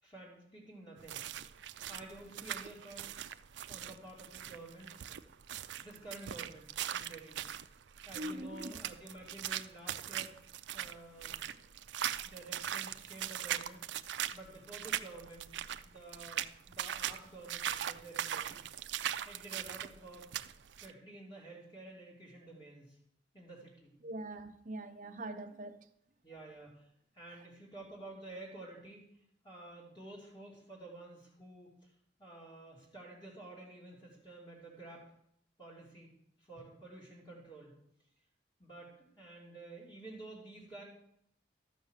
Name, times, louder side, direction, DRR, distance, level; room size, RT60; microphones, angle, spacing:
voice 1, 0.0-1.2 1.9-3.2 3.7-5.0 5.8-7.4 8.0-10.4 10.7-11.4 12.2-15.5 15.8-16.5 16.7-18.6 19.2-20.3 20.8-23.0 23.3-23.9 26.2-26.9 27.1-29.1 29.4-31.9 32.2-35.0 35.6-36.1 36.4-37.8 38.6-40.8, right 2 dB, 25° left, 3.2 m, -51 dB
sound 1, 1.0-20.9, right 10 dB, 70° right, 0.5 m, -40 dB
voice 2, 8.1-8.7 24.0-25.8 27.3-27.5, right 1 dB, 45° right, 0.9 m, -43 dB
13.5 x 6.6 x 6.6 m
head